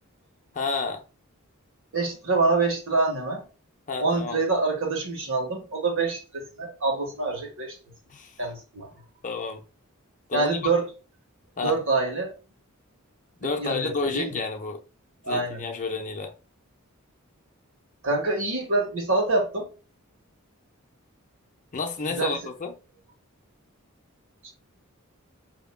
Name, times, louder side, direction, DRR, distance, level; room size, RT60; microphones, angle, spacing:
voice 1, 0.5-1.0 3.9-4.4 8.1-8.3 9.2-9.6 10.3-10.5 11.6-11.8 13.4-14.8 15.3-16.3 21.7-22.7, left 4 dB, 35° left, 0.7 m, -30 dB
voice 2, 1.9-3.5 4.0-7.7 8.4-8.9 10.3-10.8 11.6-12.3 13.4-14.4 15.2-15.6 18.0-19.7 22.0-22.4, right 3 dB, 65° right, 1.5 m, -26 dB
5.5 x 2.9 x 2.2 m
head